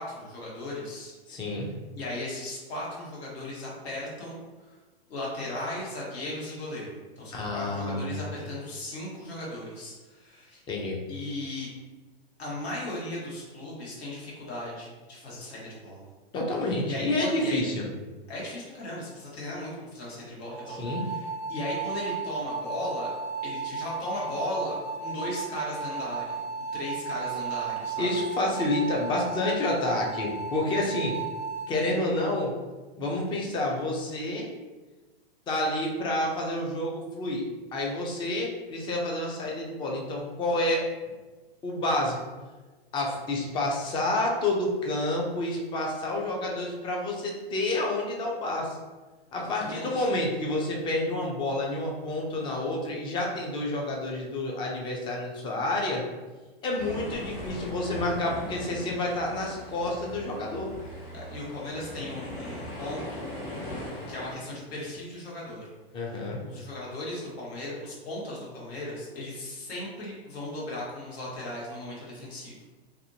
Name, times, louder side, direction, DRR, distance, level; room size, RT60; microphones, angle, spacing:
voice 1, 0.0-1.1 1.9-4.7 5.1-6.9 7.2-10.6 11.1-11.7 12.4-16.1 16.6-17.6 18.3-23.1 23.4-26.4 26.7-28.1 49.4-50.1 61.1-63.2 64.1-65.7 66.4-72.6, left 1 dB, 80° left, -5 dB, 1.3 m, -37 dB
voice 2, 1.3-1.7 7.3-8.2 10.7-11.0 16.3-17.8 20.7-21.1 28.0-31.2 31.7-32.5 33.0-34.5 35.5-37.5 37.7-40.9 41.6-42.2 42.9-48.8 49.3-56.0 56.6-60.7 65.9-66.4, left 1 dB, 15° left, -1 dB, 0.4 m, -29 dB
sound 1, 20.5-31.7, right 5 dB, 75° right, 0.5 m, -34 dB
sound 2, 56.8-64.3, left 1 dB, 35° left, 1.3 m, -39 dB
2.7 x 2.5 x 2.7 m, 1.2 s
hypercardioid pair, 125°, 32 cm